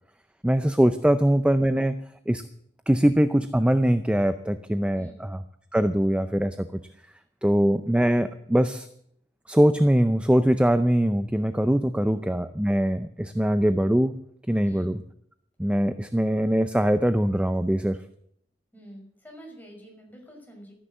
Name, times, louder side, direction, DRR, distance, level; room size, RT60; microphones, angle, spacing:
voice 1, 0.4-2.4 2.9-5.4 5.7-6.7 7.4-8.9 9.5-14.2 14.5-15.0 15.6-18.0, equal, 5° right, 10 dB, 0.5 m, -22 dB
voice 2, 18.7-20.7, equal, 10° left, 0 dB, 5.9 m, -47 dB
13.5 x 10.0 x 7.6 m, 0.70 s
head